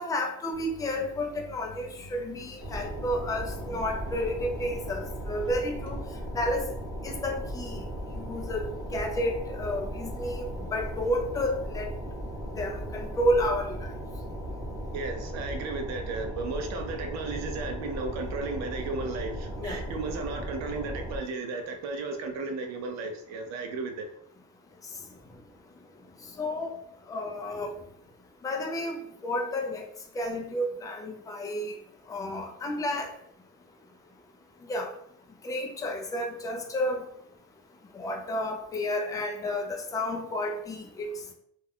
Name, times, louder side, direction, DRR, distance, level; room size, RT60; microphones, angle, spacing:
voice 1, 0.0-6.0 6.3-6.7 7.0-7.8 8.2-11.9 12.6-13.8 19.6-19.8 26.4-26.7 27.1-27.7 28.4-29.0 29.2-29.9 30.2-31.7 32.1-33.1 34.7-34.9 35.4-37.1 38.0-41.3, left 1 dB, 10° left, 2 dB, 0.3 m, -31 dB
Mechanisms, 0.5-6.0, left 1 dB, 85° left, 0.6 m, -48 dB
sound 1, 2.6-21.2, equal, 20° right, 0.9 m, -37 dB
voice 2, 14.9-24.1, right 3 dB, 60° right, 6 dB, 0.6 m, -34 dB
2.4 x 2.2 x 3.4 m, 0.68 s
cardioid pair, 140°, 31 cm